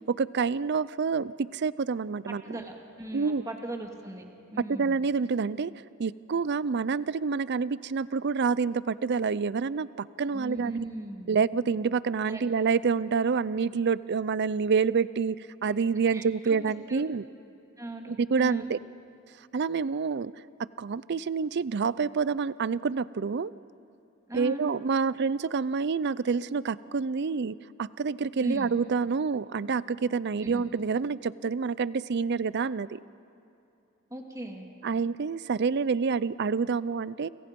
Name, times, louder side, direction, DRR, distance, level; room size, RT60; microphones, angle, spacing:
voice 1, 0.1-2.6 3.1-3.4 4.7-5.7 6.0-10.7 11.3-17.2 18.1-18.8 19.5-20.3 20.8-23.5 24.3-33.0 34.8-37.3, right 5 dB, 55° right, 18 dB, 0.5 m, -27 dB
voice 2, 2.3-4.2 4.5-5.0 10.3-11.4 12.3-12.4 16.1-16.6 16.9-17.0 17.8-18.7 24.3-24.6 28.4-28.7 30.4-30.7 34.1-34.7, right 1 dB, 15° right, 2 dB, 2.3 m, -38 dB
29.0 x 26.5 x 5.3 m, 2.8 s
head